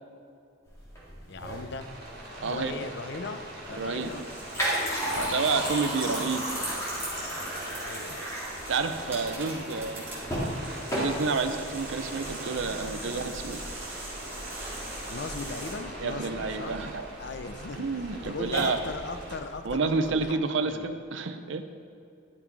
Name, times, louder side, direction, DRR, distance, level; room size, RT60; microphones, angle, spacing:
sound 1, 0.7-20.2, equal, 15° left, 2.2 m, -36 dB
voice 1, 1.3-1.9 2.4-3.4 3.7-4.3 5.1-5.5 7.8-8.2 15.1-16.8 17.2-20.4 20.6-20.9, left 3 dB, 55° left, 9 dB, 0.5 m, -38 dB
Rain, 1.8-19.4, right 1 dB, 50° right, 2.2 m, -41 dB
voice 2, 2.4-2.8 3.8-4.1 4.6-4.7 5.1-6.5 8.7-10.1 10.9-13.6 16.0-17.1 17.8-18.8 19.6-21.6, right 4 dB, 65° right, 9 dB, 0.6 m, -29 dB
sound 2, 3.7-15.7, right 2 dB, 10° right, 2.3 m, -44 dB
10.5 x 6.0 x 4.6 m, 2.6 s
head